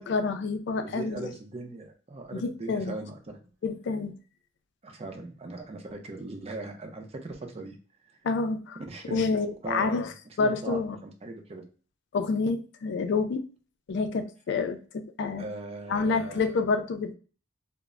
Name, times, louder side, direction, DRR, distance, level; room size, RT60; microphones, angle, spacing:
voice 1, 0.0-1.3 2.3-3.0 3.6-4.1 8.2-8.8 9.1-11.0 12.1-13.4 13.9-15.5 15.9-17.2, left 4 dB, 65° left, 8 dB, 0.4 m, -28 dB
voice 2, 0.8-3.4 4.8-7.8 8.8-9.3 9.6-10.1 10.4-11.7 15.4-16.4, right 2 dB, 30° right, 4 dB, 0.5 m, -39 dB
2.1 x 2.0 x 3.5 m, 0.38 s
head